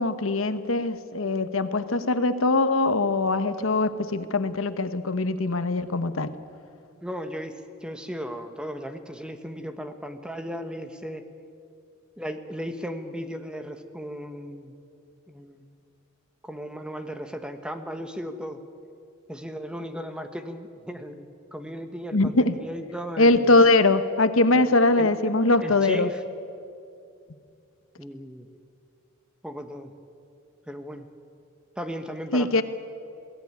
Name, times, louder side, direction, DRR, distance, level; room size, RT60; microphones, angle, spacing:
voice 1, 0.0-6.3 22.1-22.5 23.2-26.1 32.3-32.6, left 2 dB, 65° left, 11 dB, 1.1 m, -22 dB
voice 2, 7.0-11.3 12.2-14.7 15.3-15.6 16.4-18.6 19.3-23.7 24.5-24.7 25.0-25.1 25.6-26.2 28.0-28.5 29.4-29.9 30.7-31.1 31.8-32.6, equal, 5° right, 7 dB, 1.1 m, -36 dB
21.5 x 16.5 x 9.6 m, 2.5 s
head